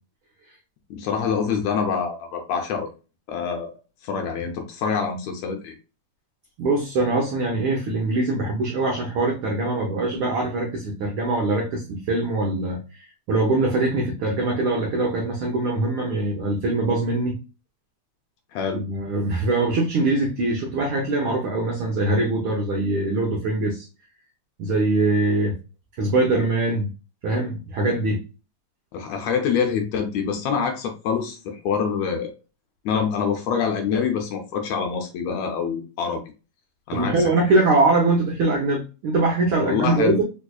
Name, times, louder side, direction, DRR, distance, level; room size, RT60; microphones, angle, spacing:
voice 1, 0.9-2.9 3.3-3.7 4.0-5.7 18.5-18.8 28.9-32.3 32.8-36.2 36.9-37.3 39.6-40.2, left 6 dB, 75° left, 1.7 m, -25 dB
voice 2, 6.6-17.4 18.7-23.9 24.6-25.5 26.0-26.9 27.2-28.2 36.9-40.2, right 2 dB, 90° right, 1.1 m, -22 dB
4.7 x 2.6 x 2.3 m
omnidirectional pair, 3.4 m